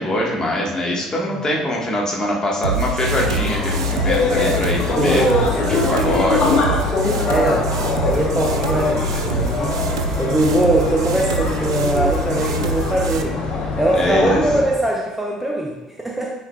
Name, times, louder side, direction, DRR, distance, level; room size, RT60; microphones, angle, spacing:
voice 1, 0.0-5.2 5.6-6.5 13.9-14.4, left 1 dB, 25° left, -2 dB, 1.7 m, -23 dB
voice 2, 1.2-1.7 5.0-6.2 7.3-7.7 8.0-13.5 13.8-16.3, right 1 dB, 10° right, -2 dB, 0.9 m, -22 dB
sound 1, 2.6-13.2, right 2 dB, 80° right, 0.3 m, -25 dB
sound 2, 3.0-14.8, left 3 dB, 50° left, 1.2 m, -23 dB
8.8 x 4.5 x 2.4 m, 1.1 s
figure-of-eight pair, 50°, 3 cm